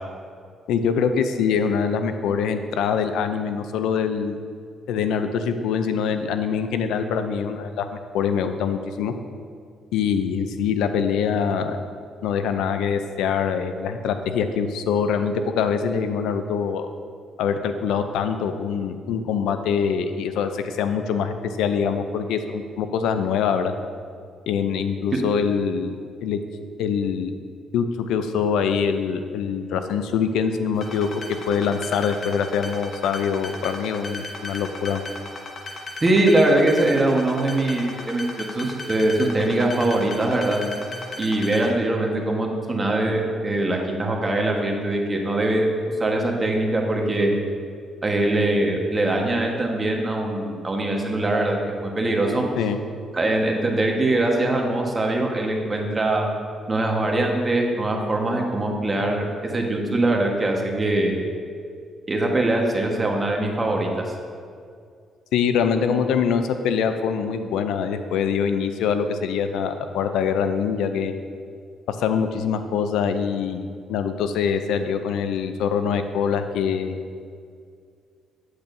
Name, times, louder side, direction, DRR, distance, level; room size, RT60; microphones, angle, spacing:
voice 1, 0.7-4.4 4.9-9.1 9.9-11.8 12.2-16.9 17.4-23.7 24.5-26.0 26.2-26.4 26.8-27.3 27.7-35.0 52.6-52.8 65.3-71.1 71.9-77.0, left 6 dB, 90° left, 8 dB, 0.4 m, -24 dB
sound 1, 30.8-41.7, left 2 dB, 50° left, 1.0 m, -36 dB
voice 2, 36.0-40.6 41.2-45.7 46.0-47.3 48.0-52.4 53.1-56.3 56.7-61.2 62.1-63.9, right 2 dB, 25° right, 1 dB, 1.3 m, -22 dB
8.6 x 8.0 x 2.7 m, 2.2 s
cardioid pair, 90°, 0 cm